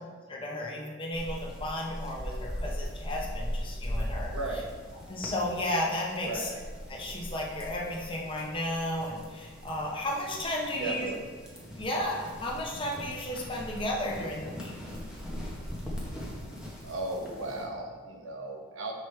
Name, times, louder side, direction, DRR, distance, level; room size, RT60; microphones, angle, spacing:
voice 1, 0.3-4.3 5.1-6.5 6.9-11.1 11.7-14.7, left 1 dB, 25° left, -2 dB, 0.9 m, -33 dB
sound 1, 1.1-17.6, equal, 5° right, 1.0 m, -40 dB
voice 2, 4.3-4.7 6.2-6.5 10.7-11.2 16.8-18.9, right 2 dB, 70° right, 1 dB, 0.9 m, -36 dB
6.2 x 5.1 x 3.3 m, 1.5 s
head